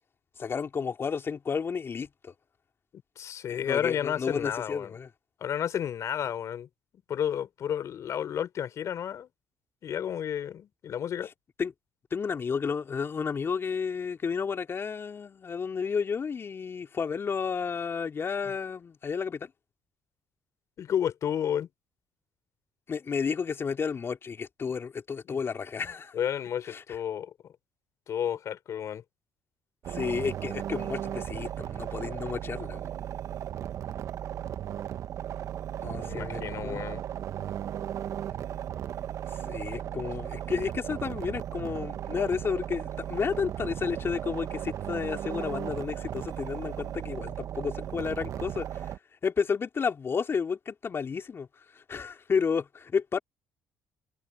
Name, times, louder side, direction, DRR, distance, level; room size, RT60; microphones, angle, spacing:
voice 1, 0.4-2.3 3.5-5.1 11.6-11.7 12.1-19.5 22.9-26.2 26.6-26.8 29.9-32.9 35.8-36.8 39.3-49.0 49.2-53.2, left 6 dB, 40° left, 3.6 m, -32 dB
voice 2, 3.2-4.9 5.4-6.7 7.1-9.3 9.8-11.3 20.8-21.7 25.3-25.4 26.1-27.3 28.1-29.0 36.0-37.0 39.8-40.0, left 9 dB, 60° left, 3.8 m, -31 dB
sound 1, 29.8-49.0, right 10 dB, 60° right, 1.5 m, -36 dB
hypercardioid pair, 60°, 6 cm